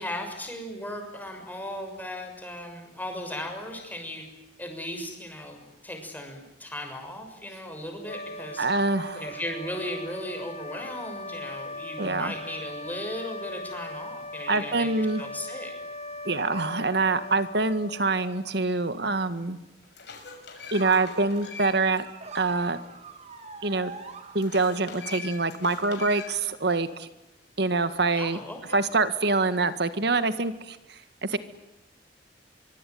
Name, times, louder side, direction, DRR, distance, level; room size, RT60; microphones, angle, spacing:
voice 1, 0.0-4.2 4.6-8.7 9.1-15.7 28.2-28.8, left 1 dB, 10° left, 3 dB, 6.5 m, -37 dB
sound 1, 8.0-18.6, left 1 dB, 35° left, 1.9 m, -39 dB
voice 2, 8.6-9.3 12.0-12.3 14.5-15.2 16.3-19.6 20.7-22.1 22.3-22.8 23.6-23.9 24.3-27.1 27.6-28.4 28.7-30.8 31.2-31.4, right 3 dB, 65° right, 11 dB, 1.9 m, -25 dB
sound 2, 19.0-19.1 19.6-22.0 22.4-22.5 24.4-26.5, left 5 dB, 70° left, 6.6 m, -42 dB
sound 3, 20.8-24.9, right 5 dB, 40° right, 2.6 m, -43 dB
24.5 x 24.0 x 9.5 m, 0.92 s
head